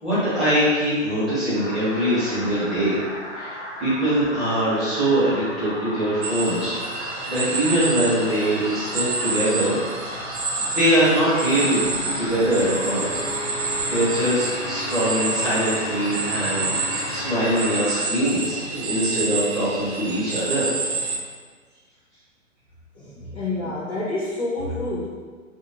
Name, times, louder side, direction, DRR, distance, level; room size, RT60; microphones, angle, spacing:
voice 1, 0.0-6.8 7.2-9.8 10.0-11.8 12.1-13.1 13.9-20.8, right 1 dB, ahead, -14 dB, 1.1 m, -23 dB
sound 1, 1.5-18.0, equal, 40° left, 1.0 m, -35 dB
sound 2, 6.2-21.2, right 3 dB, 55° right, 0.6 m, -29 dB
sound 3, 11.4-18.0, left 1 dB, 80° left, 0.9 m, -35 dB
voice 2, 22.9-25.0, left 2 dB, 25° left, -11 dB, 0.6 m, -28 dB
3.3 x 2.7 x 2.8 m, 1.5 s
figure-of-eight pair, 120°, 38 cm